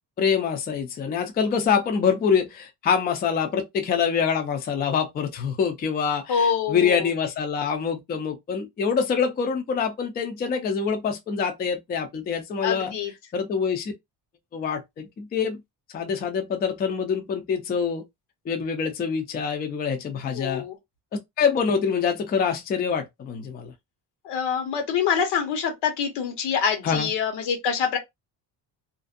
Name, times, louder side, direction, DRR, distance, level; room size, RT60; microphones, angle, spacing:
voice 1, 0.2-12.9 13.3-13.9 14.5-15.6 15.9-18.0 18.5-20.6 21.4-23.7 26.8-27.1, left 6 dB, 25° left, 0.4 m, -25 dB
voice 2, 6.3-7.1 12.6-13.1 20.3-20.7 24.2-28.0, left 7 dB, 85° left, 1.1 m, -25 dB
2.5 x 2.1 x 2.5 m
cardioid pair, 155°, 40 cm